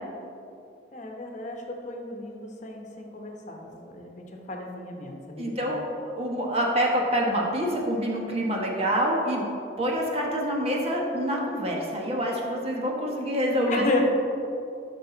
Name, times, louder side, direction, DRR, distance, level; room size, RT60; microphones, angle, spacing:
voice 1, 0.9-5.6 13.7-14.0, left 2 dB, 45° left, 1 dB, 1.1 m, -33 dB
voice 2, 5.4-9.4 9.8-14.0, equal, 35° right, -1 dB, 1.4 m, -26 dB
12.5 x 6.0 x 4.0 m, 2.9 s
head